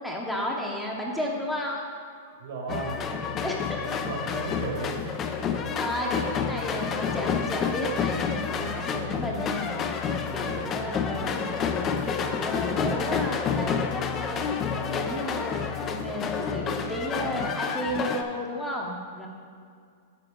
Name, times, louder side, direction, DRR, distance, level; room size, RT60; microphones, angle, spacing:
voice 1, 0.0-1.8 3.4-4.0 5.7-9.8 10.3-11.5 12.1-15.6 15.8-19.3, equal, 5° left, -2 dB, 0.9 m, -33 dB
voice 2, 2.4-3.0 4.1-5.0 5.5-5.6 10.4-10.7, right 4 dB, 65° right, 0 dB, 1.8 m, -35 dB
sound 1, 2.7-18.2, left 6 dB, 25° left, 0.5 m, -29 dB
9.3 x 5.9 x 3.7 m, 2.2 s
hypercardioid pair, 135°, 0 cm